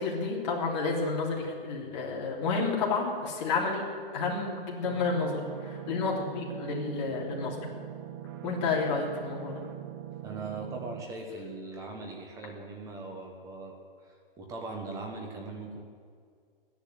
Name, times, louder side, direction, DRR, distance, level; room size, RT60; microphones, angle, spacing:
voice 1, 0.0-3.8 4.1-7.7 8.4-9.6, left 4 dB, 30° left, -2 dB, 3.3 m, -30 dB
sound 1, 4.8-11.0, right 11 dB, 30° right, 0.8 m, -42 dB
voice 2, 10.2-13.8 14.0-15.8, right 3 dB, 10° right, 2 dB, 1.3 m, -40 dB
14.0 x 10.5 x 9.5 m, 2.1 s
hypercardioid pair, 160°, 29 cm